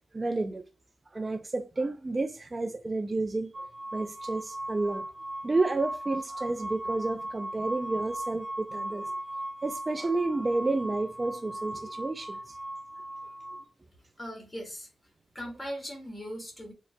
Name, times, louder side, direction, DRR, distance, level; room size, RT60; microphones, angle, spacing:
voice 1, 0.1-0.6 1.1-3.5 3.9-5.1 5.4-9.1 9.6-12.6, right 2 dB, 20° right, 0.3 m, -30 dB
sound 1, 3.5-13.6, right 1 dB, 45° right, 1.2 m, -38 dB
voice 2, 14.2-14.9 15.3-16.7, equal, 15° left, 1.4 m, -39 dB
4.6 x 2.7 x 2.2 m
wide cardioid pair, 160°, 0 cm